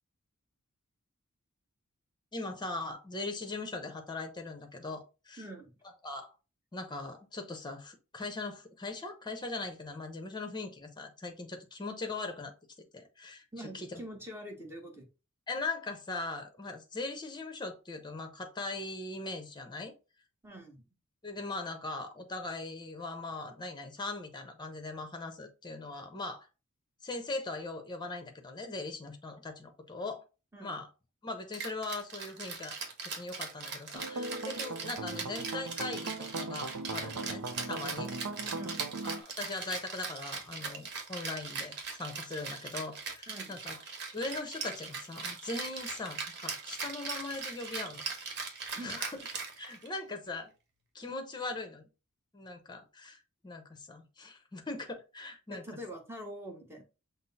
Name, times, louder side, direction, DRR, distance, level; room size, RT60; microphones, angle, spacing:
voice 1, 2.3-5.4 6.0-6.3 6.7-12.5 12.9-14.0 15.5-19.9 21.2-26.5 27.0-30.2 30.6-30.9 31.2-32.8 33.0-38.1 39.0-43.8 44.1-48.4 48.8-49.3 49.6-50.5 50.9-51.9 52.3-55.6, left 3 dB, 20° left, 0.8 m, -40 dB
voice 2, 5.4-5.7 13.5-15.1 20.4-20.9 30.5-30.7 38.0-38.2 38.5-38.9 43.3-43.6 48.7-49.0 55.5-56.8, right 1 dB, 10° right, 1.0 m, -45 dB
Rattle (instrument), 31.5-50.0, right 5 dB, 55° right, 1.1 m, -40 dB
sound 1, 33.9-39.2, right 3 dB, 75° right, 0.5 m, -39 dB
6.0 x 2.0 x 4.1 m
head